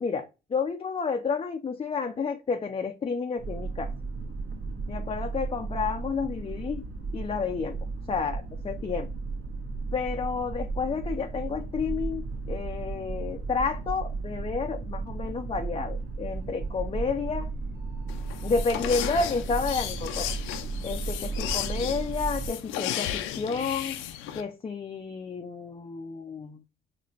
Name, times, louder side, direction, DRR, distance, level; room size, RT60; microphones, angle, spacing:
voice 1, 0.0-3.9 4.9-6.8 7.1-7.8 8.1-9.1 9.9-17.5 18.4-20.3 20.8-24.0 24.3-26.6, left 5 dB, 30° left, 0.5 m, -30 dB
sound 1, 3.4-22.5, right 4 dB, 55° right, 1.3 m, -34 dB
sound 2, 18.1-24.4, left 11 dB, 85° left, 0.5 m, -34 dB
4.8 x 2.9 x 2.8 m
supercardioid pair, 70°, 20 cm